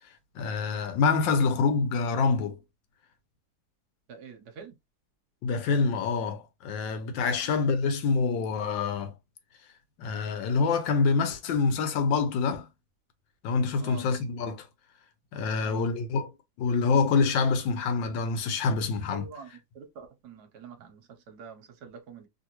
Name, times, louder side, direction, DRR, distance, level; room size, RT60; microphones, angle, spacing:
voice 1, 0.4-2.6 5.4-9.1 10.0-12.7 13.4-14.7 15.3-16.3 16.6-19.6, left 4 dB, 85° left, 1.4 m, -26 dB
voice 2, 4.1-4.7 13.8-14.0 15.6-15.8 19.1-19.5 19.8-21.0 21.3-22.3, right 6 dB, 70° right, 1.1 m, -45 dB
3.2 x 2.5 x 2.9 m
omnidirectional pair, 2.0 m